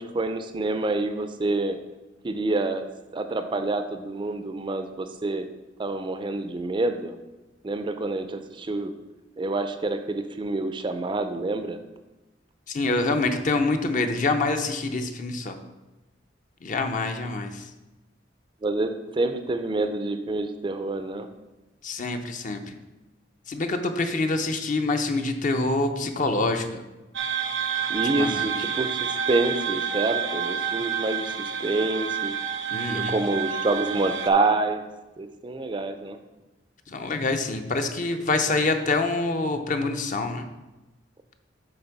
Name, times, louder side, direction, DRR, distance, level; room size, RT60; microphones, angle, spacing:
voice 1, 0.0-1.8 2.2-2.8 3.1-5.4 5.8-7.1 7.6-8.9 9.4-11.8 18.6-21.3 27.9-32.3 32.9-34.8 35.2-36.2, right 2 dB, 25° right, 8 dB, 0.4 m, -27 dB
voice 2, 12.7-15.6 16.6-17.7 21.8-22.8 23.5-26.8 28.0-28.5 32.7-33.1 36.9-40.4, left 3 dB, 45° left, 6 dB, 0.6 m, -26 dB
sound 1, 27.1-34.3, right 7 dB, 80° right, 0.7 m, -29 dB
8.0 x 3.4 x 5.9 m, 1.1 s
head